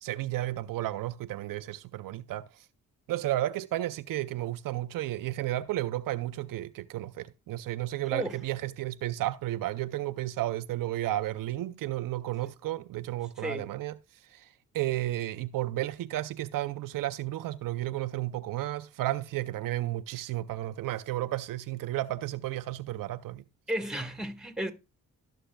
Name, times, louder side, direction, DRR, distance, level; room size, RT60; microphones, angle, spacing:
voice 1, 0.0-2.5 3.1-14.0 14.3-14.5 14.7-23.4, right 15 dB, 80° right, 0.5 m, -33 dB
voice 2, 23.7-24.7, right 1 dB, ahead, 1.5 m, -33 dB
18.0 x 6.1 x 2.2 m
cardioid pair, 65°, 33 cm